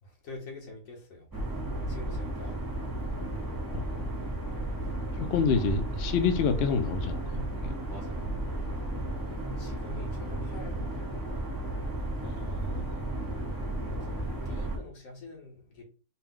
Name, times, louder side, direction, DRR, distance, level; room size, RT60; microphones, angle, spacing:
voice 1, 0.0-1.3 1.8-2.8 4.8-5.0 7.9-8.3 9.6-11.2 14.0-14.1 14.4-15.8, left 2 dB, 55° left, 1.6 m, -46 dB
sound 1, 1.3-14.8, right 1 dB, 20° right, 0.6 m, -34 dB
voice 2, 5.1-7.7 12.2-12.9, left 5 dB, 75° left, 0.5 m, -28 dB
4.3 x 2.2 x 3.7 m
omnidirectional pair, 1.7 m